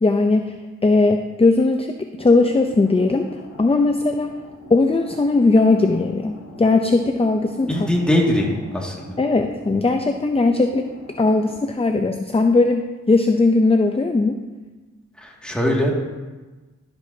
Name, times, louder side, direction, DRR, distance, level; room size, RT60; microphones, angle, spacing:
voice 1, 0.0-0.5 0.8-4.3 4.7-7.9 9.2-10.8 11.2-14.4, left 3 dB, 20° left, 6 dB, 0.5 m, -18 dB
sound 1, 2.2-11.7, left 1 dB, 85° left, 2.1 m, -41 dB
voice 2, 7.7-8.5 8.7-9.1 15.2-15.9, left 1 dB, 5° left, -3 dB, 2.1 m, -21 dB
12.0 x 7.9 x 2.8 m, 1.2 s
cardioid pair, 60°, 29 cm